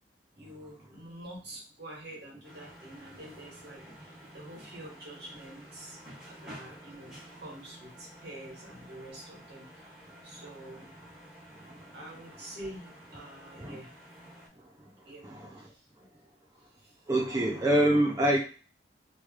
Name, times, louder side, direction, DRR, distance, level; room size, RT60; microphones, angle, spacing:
voice 1, 0.3-6.0 6.3-10.9 11.9-13.9 15.0-15.9 16.6-17.0, right 1 dB, 65° right, -3 dB, 1.4 m, -47 dB
sound 1, 2.4-14.5, right 1 dB, ahead, 1.5 m, -51 dB
voice 2, 17.1-18.4, right 1 dB, 20° right, -1 dB, 0.4 m, -25 dB
3.1 x 3.0 x 2.4 m, 0.37 s
head